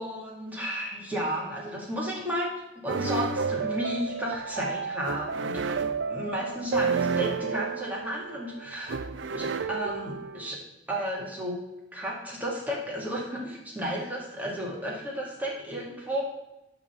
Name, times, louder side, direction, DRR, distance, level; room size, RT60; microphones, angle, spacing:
voice 1, 0.0-2.5 2.8-5.6 6.1-9.0 9.3-10.6 10.9-11.6 11.9-16.2, equal, 10° right, -4 dB, 2.2 m, -33 dB
sound 1, 2.9-10.6, right 5 dB, 80° right, 0.5 m, -31 dB
11.5 x 4.1 x 6.9 m, 0.97 s
head